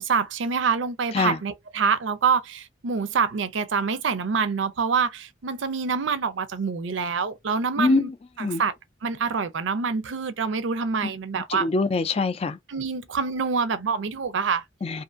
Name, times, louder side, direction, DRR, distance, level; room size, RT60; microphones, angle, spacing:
voice 1, 0.0-8.1 8.4-8.7 9.0-11.7 12.7-14.6, right 5 dB, 80° right, 0.5 m, -26 dB
voice 2, 7.8-8.1 8.4-8.6 11.5-12.6 14.8-15.0, left 3 dB, 30° left, 0.3 m, -23 dB
2.5 x 2.5 x 2.4 m
head